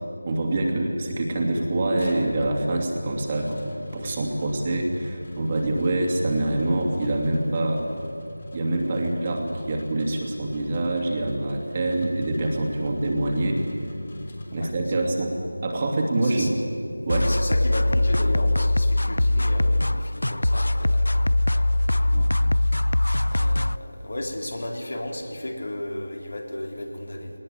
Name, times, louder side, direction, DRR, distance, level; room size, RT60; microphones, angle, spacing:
voice 1, 0.3-3.6 3.9-7.8 8.5-13.6 14.5-15.3 15.6-16.6 17.1-17.3 22.1-22.3, right 2 dB, 30° right, 1 dB, 2.6 m, -25 dB
sound 1, 2.0-15.1, left 1 dB, 45° left, 3.5 m, -43 dB
voice 2, 14.5-15.2 16.2-16.5 17.3-22.3 23.3-27.3, left 1 dB, 65° left, 2 dB, 3.7 m, -34 dB
sound 2, 17.1-23.8, left 1 dB, 85° left, 0.6 m, -22 dB
19.5 x 19.0 x 9.1 m, 2.6 s
figure-of-eight pair, 170°, 0 cm